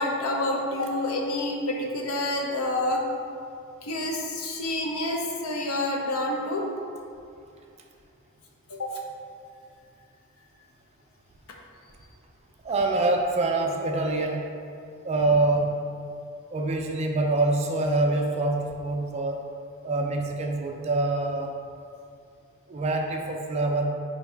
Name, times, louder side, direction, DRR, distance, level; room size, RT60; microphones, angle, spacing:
voice 1, 0.0-3.0 3.8-6.7 8.7-9.0, left 1 dB, 70° left, 0 dB, 0.5 m, -28 dB
voice 2, 12.6-14.5 15.0-15.9 16.5-19.5 19.8-21.7 22.7-23.9, right 2 dB, 30° right, 2 dB, 0.3 m, -25 dB
4.5 x 2.6 x 3.3 m, 2.4 s
head